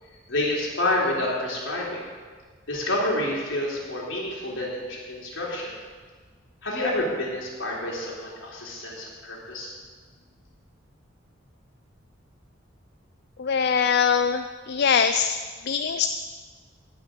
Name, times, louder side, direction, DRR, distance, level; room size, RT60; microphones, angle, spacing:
voice 1, 0.3-2.0 2.7-5.7 6.6-9.7, left 1 dB, 75° left, -4 dB, 3.8 m, -28 dB
voice 2, 13.4-15.4 15.7-16.1, left 7 dB, 55° left, 9 dB, 0.4 m, -22 dB
18.0 x 6.1 x 6.7 m, 1.5 s
head